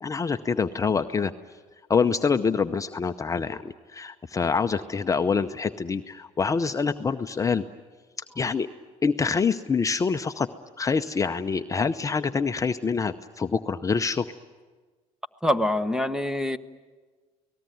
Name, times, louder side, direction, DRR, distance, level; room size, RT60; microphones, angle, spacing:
voice 1, 0.0-1.3 1.9-7.6 8.4-8.7 9.0-10.5 10.8-14.3, left 5 dB, 25° left, 8 dB, 0.7 m, -26 dB
voice 2, 15.4-16.6, left 1 dB, 5° right, 13 dB, 1.1 m, -25 dB
29.5 x 19.0 x 9.3 m, 1.4 s
supercardioid pair, 100°, 14 cm